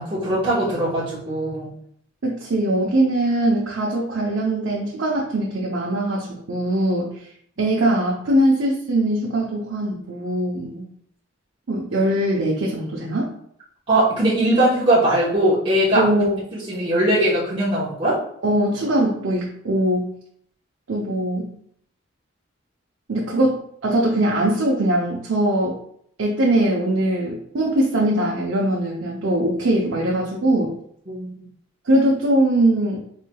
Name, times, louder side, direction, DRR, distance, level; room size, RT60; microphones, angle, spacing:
voice 1, 0.0-1.7 13.9-16.1 16.5-18.2 31.1-31.3, right 1 dB, 25° right, -10 dB, 0.9 m, -20 dB
voice 2, 2.2-7.3 7.6-10.8 11.7-13.3 15.9-16.4 18.4-20.1 20.9-21.5 23.1-25.8 26.2-30.7 31.8-33.0, right 1 dB, 80° right, -3 dB, 0.6 m, -21 dB
4.1 x 3.1 x 2.2 m, 0.66 s
head